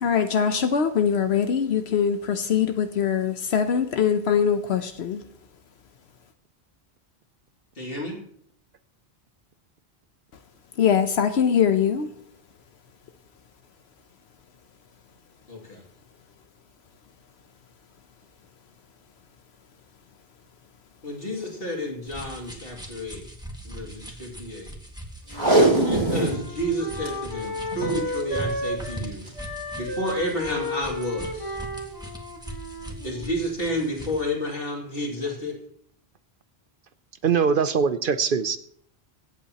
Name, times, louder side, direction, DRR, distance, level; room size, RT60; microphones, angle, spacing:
voice 1, 0.0-5.2 10.8-12.1, left 7 dB, 80° left, 8 dB, 1.0 m, -22 dB
voice 2, 7.8-8.2 15.5-15.8 21.0-23.2 23.6-24.7 25.8-29.5 29.8-31.6 33.0-35.5, left 1 dB, 60° left, -1 dB, 2.8 m, -31 dB
sound 1, 22.1-34.3, right 1 dB, 5° right, 1.6 m, -40 dB
Wind instrument woodwind instrument, 25.3-29.1 29.3-33.5, left 1 dB, 20° left, 1.7 m, -33 dB
Packing tape duct tape, 25.3-26.4 26.8-26.9 27.0-27.1 27.7-28.0 29.0-29.3 29.9-30.0, right 2 dB, 40° right, 3.3 m, -21 dB
voice 3, 37.2-38.6, right 6 dB, 60° right, 12 dB, 0.8 m, -22 dB
23.5 x 8.5 x 2.9 m, 0.64 s
omnidirectional pair, 1.1 m